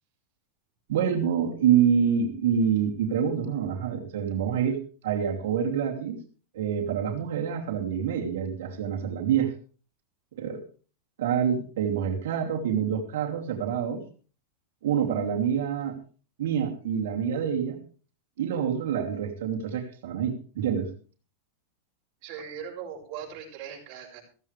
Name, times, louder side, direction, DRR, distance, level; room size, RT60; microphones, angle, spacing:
voice 1, 0.9-4.8 5.0-6.2 6.5-9.5 10.4-10.6 11.2-14.0 14.8-16.0 16.4-17.8 18.4-20.9, right 8 dB, 80° right, 1 dB, 2.8 m, -26 dB
voice 2, 22.2-24.2, right 8 dB, 45° right, -1 dB, 6.7 m, -39 dB
15.5 x 15.0 x 3.4 m, 0.39 s
supercardioid pair, 145°, 0 cm